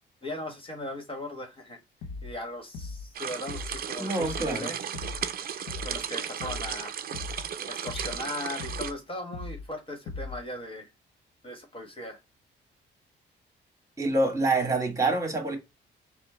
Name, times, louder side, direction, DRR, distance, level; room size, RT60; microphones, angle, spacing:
voice 1, 0.2-1.8 2.2-4.8 5.8-6.9 7.7-10.9 11.4-12.2, left 1 dB, 25° left, 1.6 m, -38 dB
sound 1, 2.0-2.4 2.7-3.1 3.5-3.8 4.2-4.6 4.9-5.3 5.7-6.0 6.4-6.8 7.1-7.5 7.9-8.2 8.6-9.0 9.3-9.7 10.1-10.5, left 3 dB, 90° left, 0.6 m, -39 dB
sound 2, 3.1-8.9, right 8 dB, 50° right, 0.6 m, -35 dB
voice 2, 4.0-4.7 14.0-15.6, right 2 dB, 15° right, 2.4 m, -26 dB
4.3 x 2.2 x 4.2 m
cardioid pair, 90°, 20 cm